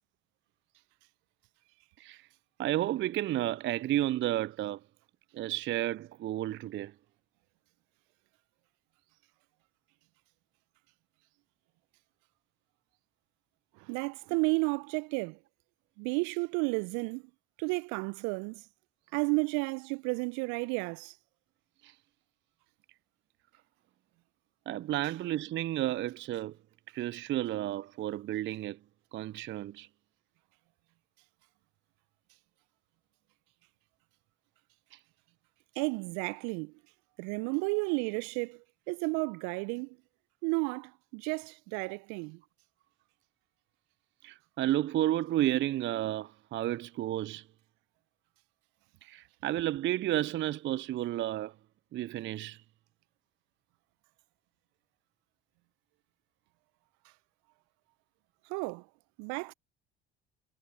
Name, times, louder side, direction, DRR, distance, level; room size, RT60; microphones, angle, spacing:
voice 1, 2.0-2.3 2.6-4.8 5.3-6.9 21.8-21.9 24.7-26.6 26.9-28.8 29.1-29.9 34.9-35.0 44.2-47.4 49.0-51.5 51.9-52.6, right 13 dB, 35° right, 0.5 m, -32 dB
voice 2, 13.9-15.4 16.0-17.2 17.6-18.6 19.1-21.1 35.8-36.7 37.2-38.6 38.9-39.9 40.4-42.4 58.5-58.8 59.2-59.5, right 32 dB, 60° right, 0.9 m, -32 dB
figure-of-eight pair, 60°, 32 cm